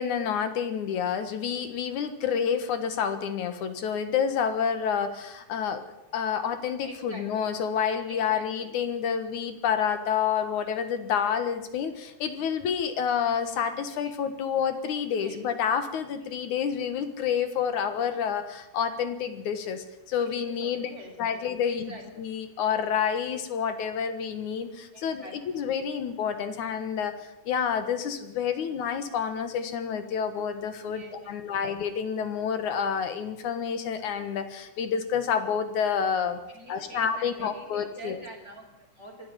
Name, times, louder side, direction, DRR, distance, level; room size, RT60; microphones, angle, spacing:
voice 1, 0.0-20.9 21.2-36.4 36.7-38.2, left 7 dB, 60° left, 10 dB, 2.1 m, -29 dB
voice 2, 6.8-7.3 8.0-8.7 14.0-14.2 15.1-15.4 16.2-16.4 20.2-22.0 24.9-25.6 30.8-31.6 36.5-39.3, right 1 dB, 15° left, -1 dB, 3.9 m, -46 dB
24.5 x 10.5 x 10.0 m, 0.93 s
omnidirectional pair, 5.2 m